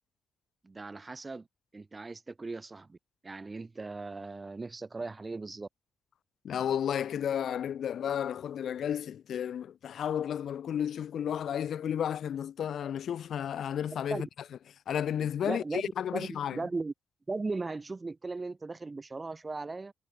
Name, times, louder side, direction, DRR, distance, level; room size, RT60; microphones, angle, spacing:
voice 1, 0.6-1.5 1.7-3.0 3.2-5.7 14.1-14.3 15.4-16.9 17.3-19.9, right 3 dB, 25° right, 1.0 m, -37 dB
voice 2, 6.4-14.3 14.9-16.6, left 9 dB, 65° left, 0.8 m, -32 dB
cardioid pair, 90°, 0 cm